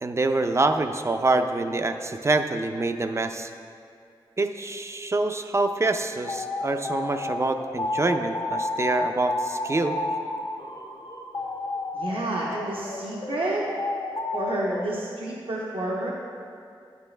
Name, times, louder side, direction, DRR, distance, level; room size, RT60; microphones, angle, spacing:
voice 1, 0.0-3.5 4.4-10.0, right 2 dB, 30° right, 7 dB, 0.4 m, -26 dB
sound 1, 6.2-14.9, left 2 dB, 45° left, 0.7 m, -31 dB
voice 2, 11.9-13.7 14.3-16.1, right 1 dB, 80° right, -4 dB, 1.0 m, -29 dB
10.5 x 8.4 x 3.3 m, 2.3 s
wide cardioid pair, 110°, 9 cm